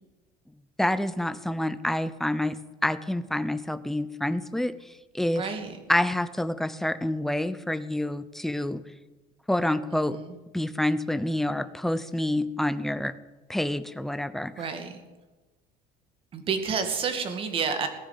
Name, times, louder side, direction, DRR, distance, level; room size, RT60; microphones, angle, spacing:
voice 1, 0.8-4.8 5.1-5.4 5.9-8.8 9.5-10.2 10.5-13.2 13.5-14.6, left 1 dB, ahead, 13 dB, 0.6 m, -27 dB
voice 2, 5.4-5.8 10.1-10.3 14.6-15.0 16.3-17.9, right 6 dB, 35° right, 7 dB, 2.2 m, -29 dB
18.0 x 10.0 x 7.6 m, 1.2 s
cardioid pair, 160°, 16 cm